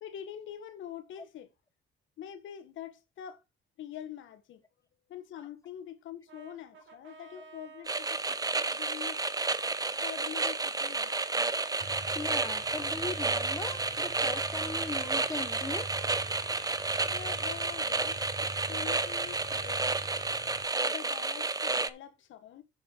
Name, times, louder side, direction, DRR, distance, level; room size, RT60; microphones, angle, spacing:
voice 1, 0.0-1.5 2.2-3.4 3.8-4.6 5.1-9.2 10.0-11.1 17.1-20.0 20.8-22.6, left 10 dB, 80° left, 1.4 m, -45 dB
Brass instrument, 6.3-11.9 12.4-17.2, right 4 dB, 75° right, 3.8 m, -54 dB
sound 1, 7.9-21.9, right 3 dB, 20° right, 0.8 m, -31 dB
voice 2, 11.8-15.9, left 3 dB, 15° left, 1.1 m, -39 dB
sound 2, 11.8-20.6, right 2 dB, 40° right, 3.4 m, -44 dB
7.3 x 7.3 x 4.5 m
cardioid pair, 90°, 20 cm